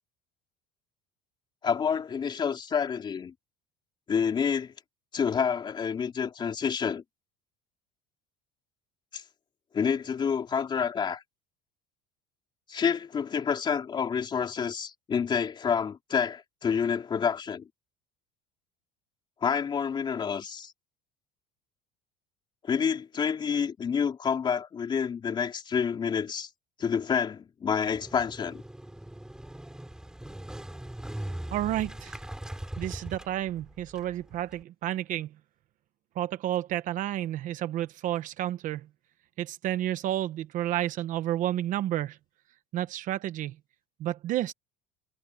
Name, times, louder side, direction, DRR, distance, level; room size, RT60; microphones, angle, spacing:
voice 1, 1.6-3.3 4.1-4.7 5.1-7.0 9.1-9.2 9.7-11.2 12.7-17.7 19.4-20.7 22.6-26.5 26.8-28.6, left 6 dB, 25° left, 3.7 m, -28 dB
Motorcycle, 27.8-34.6, right 1 dB, 5° right, 5.4 m, -40 dB
voice 2, 31.5-32.2 32.8-35.3 36.2-38.9 39.4-42.2 42.7-43.5 44.0-44.5, right 13 dB, 45° right, 0.9 m, -31 dB
cardioid pair, 155°, 18 cm